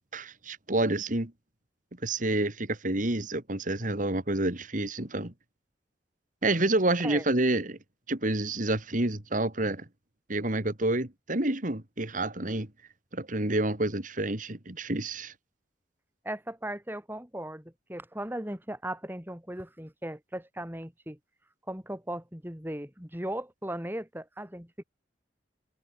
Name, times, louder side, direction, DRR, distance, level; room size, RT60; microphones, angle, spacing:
voice 1, 0.1-1.3 2.0-5.3 6.4-7.8 8.1-9.8 10.3-12.7 13.1-15.3, right 2 dB, 45° right, 2.6 m, -28 dB
voice 2, 16.2-21.2 21.7-24.8, right 1 dB, 10° right, 3.7 m, -37 dB
head